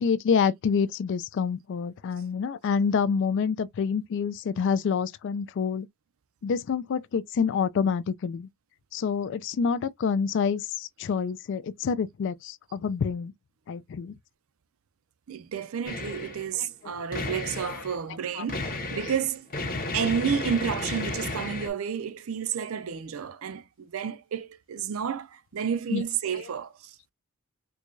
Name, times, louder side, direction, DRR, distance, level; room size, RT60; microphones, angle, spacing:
voice 1, 0.0-5.9 6.4-8.5 8.9-13.3 13.7-14.1 16.5-16.9 17.6-17.8 18.3-18.4 19.7-19.9 25.9-26.0 26.3-26.4, left 6 dB, 55° left, 0.3 m, -27 dB
voice 2, 15.3-19.5 19.9-27.1, right 7 dB, 65° right, 0.4 m, -31 dB
sound 1, 15.9-16.5 17.1-18.0 18.5-21.7, left 2 dB, 40° left, 1.0 m, -33 dB
4.6 x 2.3 x 2.5 m
head